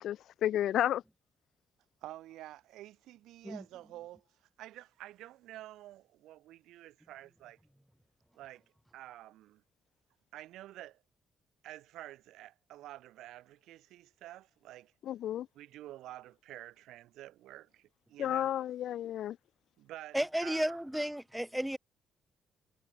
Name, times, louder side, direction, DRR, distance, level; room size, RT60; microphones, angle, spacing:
voice 1, 0.0-1.0 15.0-15.5 18.2-19.4, left 11 dB, 75° left, 0.7 m, -32 dB
voice 2, 2.0-4.2 4.6-7.6 8.3-8.6 8.9-9.6 10.3-11.0 11.6-14.9 15.5-18.5 19.8-20.8, right 15 dB, 90° right, 1.9 m, -49 dB
voice 3, 20.1-21.8, equal, 5° right, 0.4 m, -33 dB
cardioid pair, 90°, 0 cm